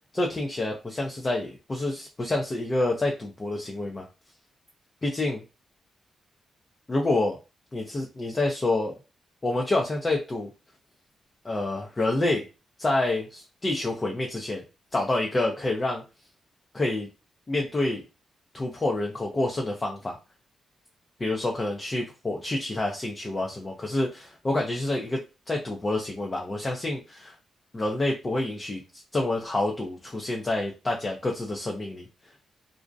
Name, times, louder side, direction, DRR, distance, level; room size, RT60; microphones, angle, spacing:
voice 1, 0.1-4.1 5.0-5.4 6.9-7.4 7.7-8.9 9.4-10.5 11.4-12.5 12.8-14.6 14.9-16.0 16.7-17.1 17.5-18.0 18.5-20.2 21.2-25.2 25.5-27.4 27.7-28.8 29.1-32.1, left 2 dB, 30° left, 1 dB, 0.5 m, -28 dB
2.5 x 2.1 x 2.4 m, 0.29 s
cardioid pair, 90°, 0 cm